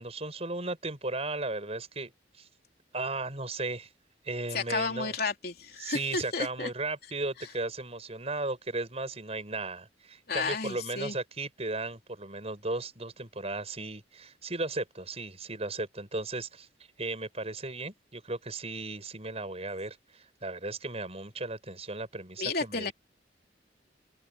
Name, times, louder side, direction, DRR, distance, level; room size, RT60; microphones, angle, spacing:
voice 1, 0.0-2.1 2.4-2.5 2.9-3.9 4.3-5.1 5.8-16.7 17.0-22.9, right 2 dB, 35° right, 6.8 m, -36 dB
voice 2, 4.5-6.7 10.3-11.2 22.4-22.9, left 4 dB, 55° left, 3.6 m, -32 dB
open air
head